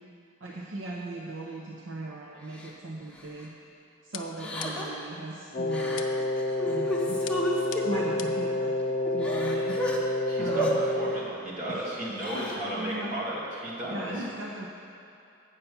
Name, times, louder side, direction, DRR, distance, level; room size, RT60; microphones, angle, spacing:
voice 1, 0.4-3.5 4.0-6.2 6.7-7.2 7.7-8.7 9.1-9.8 10.4-10.8 11.7-11.9 12.3-13.1 13.9-14.7, right 2 dB, 70° right, -3 dB, 0.8 m, -37 dB
Crying sobbing, 2.6-2.7 3.2-3.4 4.4-5.0 5.7-6.0 6.4-8.0 8.6-8.7 9.1-10.0 10.5-10.7 12.0-12.6, equal, 5° left, 0.9 m, -32 dB
sound 1, 4.1-5.1 6.0-6.4 7.3-8.5, left 9 dB, 90° left, 0.5 m, -42 dB
Wind instrument woodwind instrument, 5.5-11.3, left 2 dB, 40° left, 0.5 m, -29 dB
voice 2, 10.2-14.2, right 1 dB, 40° right, -7 dB, 2.2 m, -35 dB
8.4 x 5.8 x 6.9 m, 2.6 s
head